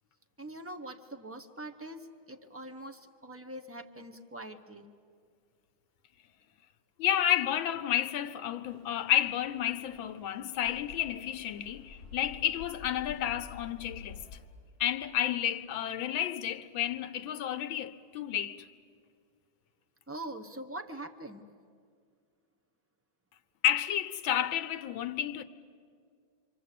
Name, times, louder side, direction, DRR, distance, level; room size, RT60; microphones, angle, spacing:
voice 1, 0.4-4.9 20.1-21.5, right 1 dB, 15° right, 0.5 m, -43 dB
voice 2, 7.0-14.2 14.8-18.7 23.6-25.4, left 11 dB, 85° left, 1.7 m, -31 dB
sound 1, 8.7-14.4, left 5 dB, 55° right, 4.3 m, -50 dB
27.5 x 25.0 x 8.4 m
omnidirectional pair, 2.1 m